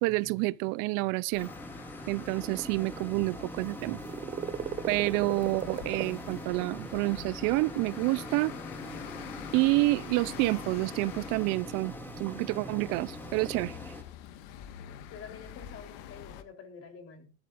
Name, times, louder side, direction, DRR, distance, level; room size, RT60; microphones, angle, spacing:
voice 1, 0.0-1.5 2.1-4.0 4.9-8.5 9.5-11.9 12.2-13.8, right 22 dB, 65° right, 0.7 m, -28 dB
sound 1, 1.3-16.4, left 11 dB, 70° left, 1.7 m, -46 dB
sound 2, 1.4-14.0, equal, 5° left, 2.5 m, -43 dB
sound 3, 2.2-13.7, right 9 dB, 25° right, 0.6 m, -43 dB
voice 2, 14.8-17.3, left 6 dB, 40° left, 3.8 m, -48 dB
20.0 x 13.0 x 2.6 m
cardioid pair, 145°, 34 cm